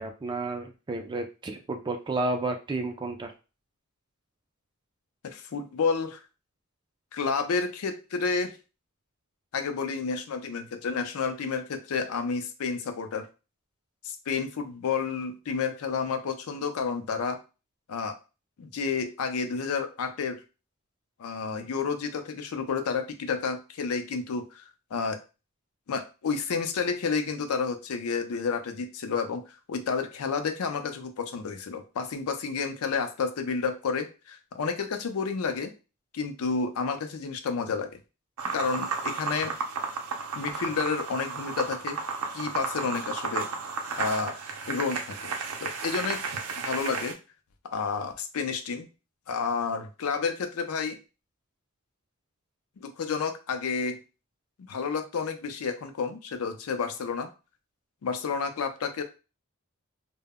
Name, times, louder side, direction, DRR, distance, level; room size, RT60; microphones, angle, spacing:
voice 1, 0.0-3.3, right 2 dB, 20° right, 5 dB, 0.3 m, -31 dB
voice 2, 5.2-6.2 7.1-8.6 9.5-13.3 14.0-17.4 17.9-18.2 18.6-20.4 21.2-24.6 24.9-25.2 25.9-35.7 36.1-38.0 38.5-39.5 40.4-42.0 42.3-43.5 44.0-44.4 44.7-45.3 45.6-46.2 46.6-47.1 47.6-48.9 49.3-51.0 52.8-54.0 54.6-57.3 58.0-59.0, left 5 dB, 75° left, 7 dB, 0.4 m, -30 dB
sound 1, 38.4-47.1, right 4 dB, 80° right, 0.5 m, -33 dB
2.1 x 2.0 x 3.5 m, 0.31 s
head